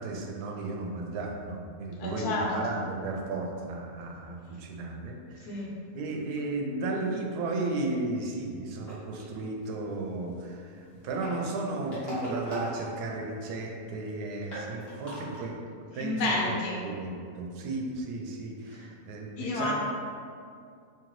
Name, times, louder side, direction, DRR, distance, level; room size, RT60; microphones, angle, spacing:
voice 1, 0.0-5.6 5.9-15.6 15.9-16.5 16.8-19.7, right 2 dB, 85° right, 1 dB, 1.1 m, -34 dB
voice 2, 2.0-2.8 5.4-5.7 15.9-16.8 18.8-18.9 19.4-19.7, left 2 dB, 85° left, -2 dB, 1.3 m, -30 dB
sound 1, 8.8-9.2 11.0-13.5 13.8-13.9 14.1-14.2 14.4-15.4, right 1 dB, 40° left, 1.5 m, -38 dB
3.8 x 3.0 x 3.0 m, 2.3 s
omnidirectional pair, 1.6 m